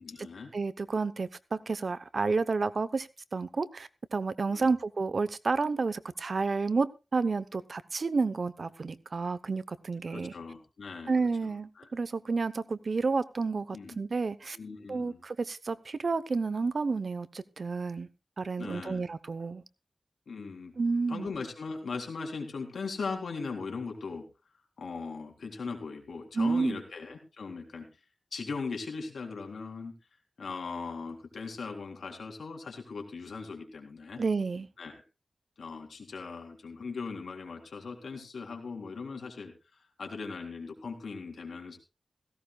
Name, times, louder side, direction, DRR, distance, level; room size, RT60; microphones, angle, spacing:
voice 1, 0.0-0.5 4.5-4.8 10.1-11.5 11.8-11.9 13.7-14.0 14.5-15.2 18.6-19.0 20.3-20.7 21.1-24.2 24.8-27.9 28.3-29.9 30.4-34.2 34.8-35.0 35.6-41.8, left 4 dB, 85° left, 3.6 m, -39 dB
voice 2, 0.5-10.3 11.1-14.6 14.9-18.1 18.4-19.6 20.8-21.3 26.3-26.8 34.2-34.7, right 4 dB, 60° right, 0.9 m, -30 dB
17.0 x 16.5 x 2.4 m
wide cardioid pair, 75°, 0 cm